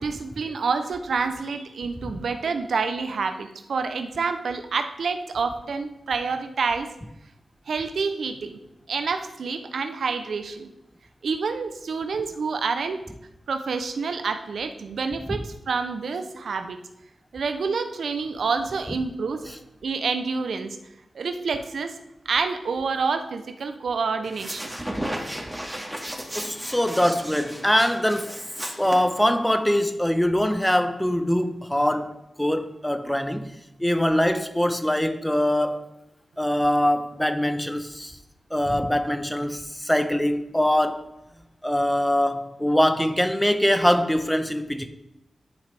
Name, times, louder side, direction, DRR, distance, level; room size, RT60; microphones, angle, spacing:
voice 1, 0.0-6.9 7.7-8.6 8.9-10.7 11.2-13.0 13.5-16.8 17.3-19.5 19.8-20.8 21.1-21.9 22.3-24.7, right 4 dB, 80° right, 8 dB, 0.6 m, -28 dB
sound 1, 24.2-29.6, right 1 dB, 10° right, 2.0 m, -35 dB
voice 2, 26.3-28.4 28.8-33.5 33.8-35.8 36.4-38.2 38.5-41.1 41.6-44.9, left 1 dB, 10° left, 9 dB, 0.9 m, -23 dB
11.5 x 4.9 x 3.4 m, 0.87 s
cardioid pair, 45°, 0 cm